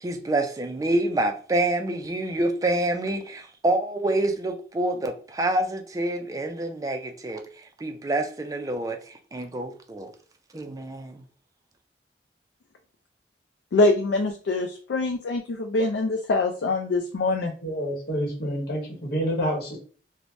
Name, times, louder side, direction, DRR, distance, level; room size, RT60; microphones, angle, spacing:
voice 1, 0.0-7.4 7.8-10.1 10.5-11.2, right 1 dB, 20° right, 0.3 m, -27 dB
voice 2, 13.7-17.5, left 2 dB, 80° left, 0.4 m, -24 dB
voice 3, 17.6-19.8, equal, 60° left, 1.1 m, -28 dB
3.1 x 2.1 x 2.6 m
head